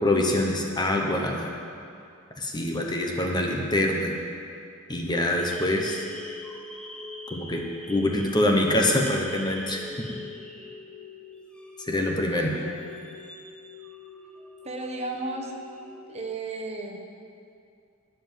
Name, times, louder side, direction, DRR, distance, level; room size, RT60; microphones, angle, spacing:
voice 1, 0.0-1.5 2.4-4.2 4.9-6.0 7.3-9.8 10.1-10.2 11.9-12.5, left 1 dB, 20° left, 1 dB, 1.0 m, -25 dB
sound 1, 5.4-16.3, left 2 dB, 5° left, 0.7 m, -42 dB
voice 2, 12.3-13.1 14.6-15.5 16.1-17.0, right 2 dB, 30° right, 1 dB, 1.1 m, -34 dB
12.0 x 5.6 x 9.2 m, 2.4 s
head